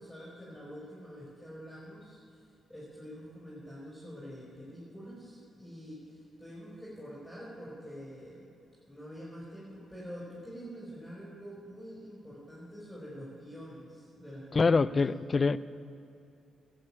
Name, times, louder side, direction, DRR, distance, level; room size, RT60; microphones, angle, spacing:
voice 1, 0.0-2.4 2.7-8.5 8.9-14.9, equal, 10° left, -6 dB, 4.1 m, -46 dB
voice 2, 14.5-15.6, left 4 dB, 40° left, 17 dB, 0.4 m, -25 dB
13.0 x 7.6 x 8.6 m, 2.6 s
cardioid pair, 65°, 0 cm